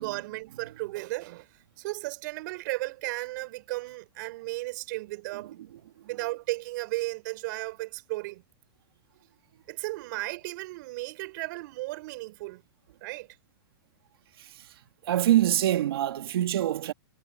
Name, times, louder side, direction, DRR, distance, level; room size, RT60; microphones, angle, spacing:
voice 1, 0.0-5.6 6.0-8.4 9.7-12.6 13.0-13.4, right 21 dB, 50° right, 5.9 m, -35 dB
voice 2, 5.3-5.7 6.0-6.1 14.4-16.9, right 12 dB, 75° right, 2.6 m, -26 dB
hypercardioid pair, 145°, 13 cm